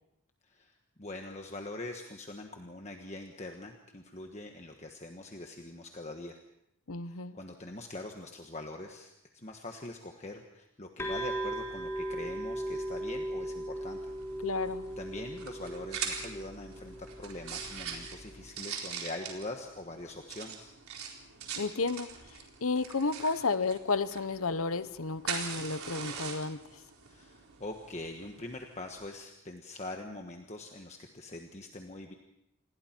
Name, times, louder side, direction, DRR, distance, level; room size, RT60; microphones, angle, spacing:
voice 1, 0.4-6.4 7.1-14.1 15.0-20.7 27.1-32.1, left 2 dB, 30° left, 3 dB, 1.4 m, -43 dB
voice 2, 6.9-7.4 14.4-14.9 21.6-22.1 22.6-26.6, left 4 dB, 75° left, 13 dB, 1.0 m, -32 dB
sound 1, 11.0-18.5, right 1 dB, 15° left, 3.6 m, -38 dB
sound 2, 13.7-29.1, right 6 dB, 85° right, 4.1 m, -43 dB
28.0 x 21.0 x 4.5 m, 0.84 s
head